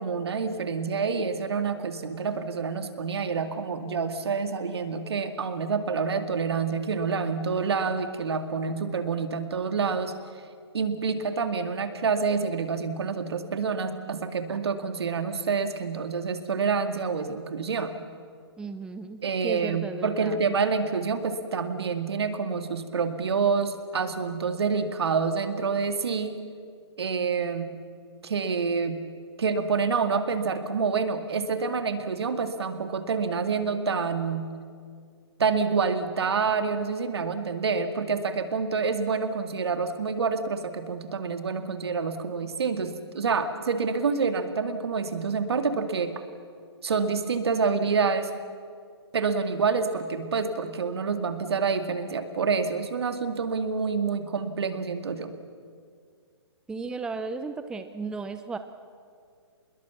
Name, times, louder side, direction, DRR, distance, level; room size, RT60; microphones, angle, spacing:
voice 1, 0.0-10.1 10.7-18.0 19.2-26.3 27.0-27.8 28.2-29.0 29.4-34.5 35.4-46.1 46.8-48.3 49.1-55.3, right 5 dB, 65° right, 8 dB, 2.2 m, -27 dB
voice 2, 18.6-20.6 56.7-58.6, right 4 dB, 5° right, 9 dB, 0.6 m, -35 dB
26.5 x 21.0 x 7.1 m, 2.1 s
hypercardioid pair, 135°, 14 cm